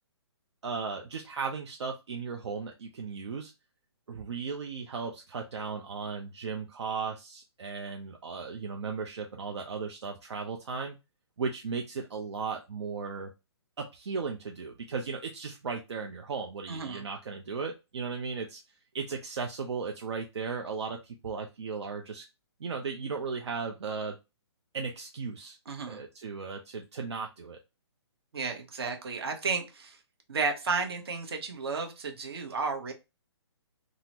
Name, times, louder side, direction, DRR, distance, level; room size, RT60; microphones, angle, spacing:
voice 1, 0.6-3.5 4.1-11.0 11.4-13.3 13.8-18.6 18.9-22.2 22.6-24.2 24.7-25.6 25.9-27.6, right 5 dB, 75° right, 2 dB, 0.6 m, -36 dB
voice 2, 16.7-17.1 25.7-26.0 28.3-30.0 30.3-32.9, right 4 dB, 60° right, 3 dB, 1.0 m, -33 dB
3.7 x 2.1 x 2.9 m, 0.25 s
hypercardioid pair, 160°, 15 cm